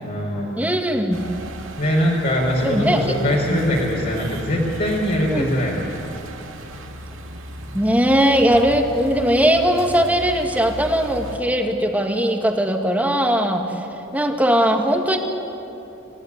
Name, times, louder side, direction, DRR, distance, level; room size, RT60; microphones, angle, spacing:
voice 1, 0.0-0.6 1.8-5.9, equal, 50° left, -4 dB, 4.5 m, -22 dB
voice 2, 0.6-1.2 2.6-3.1 3.5-3.6 5.3-5.5 7.7-13.6 14.1-15.2, equal, 10° right, 3 dB, 2.0 m, -19 dB
sound 1, 1.1-11.4, right 1 dB, 90° right, 2.1 m, -36 dB
25.0 x 17.0 x 9.9 m, 3.0 s
head